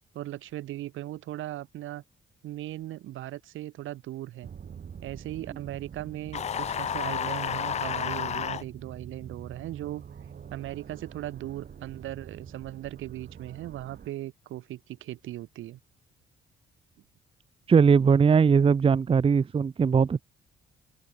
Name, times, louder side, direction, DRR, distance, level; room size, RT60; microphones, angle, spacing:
voice 1, 0.1-2.0 2.4-4.5 5.0-10.0 10.5-15.8, right 14 dB, 85° right, 2.5 m, -38 dB
sound 1, 4.4-14.1, right 7 dB, 50° right, 4.0 m, -45 dB
sound 2, 6.3-8.6, left 8 dB, 35° left, 0.4 m, -31 dB
voice 2, 17.7-20.2, right 6 dB, 30° right, 0.6 m, -20 dB
open air
cardioid pair, 90°, 20 cm